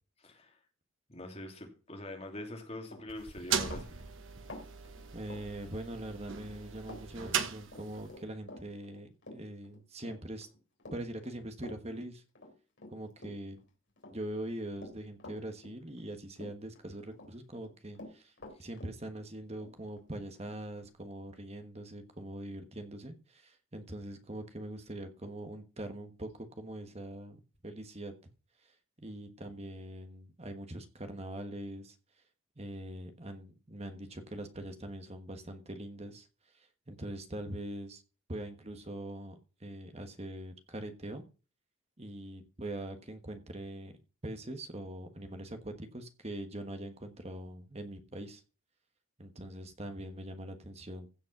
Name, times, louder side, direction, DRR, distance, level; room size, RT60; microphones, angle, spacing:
voice 1, 0.2-0.6 1.1-3.9, left 1 dB, 30° left, 2 dB, 2.7 m, -44 dB
Run, 2.8-6.2 6.5-7.0 7.3-13.6 14.0-16.1 16.4-17.3 17.5-20.9, left 1 dB, 55° left, 3.4 m, -50 dB
sound 1, 3.1-8.2, right 7 dB, 65° right, 1.2 m, -38 dB
voice 2, 5.1-10.5 10.9-12.2 12.9-13.6 14.1-18.3 18.6-28.1 29.0-32.0 32.6-36.3 36.5-38.0 38.3-41.3 42.0-43.9 44.2-48.4 49.2-51.1, right 1 dB, 30° right, 8 dB, 1.3 m, -42 dB
15.5 x 5.4 x 5.9 m, 0.36 s
head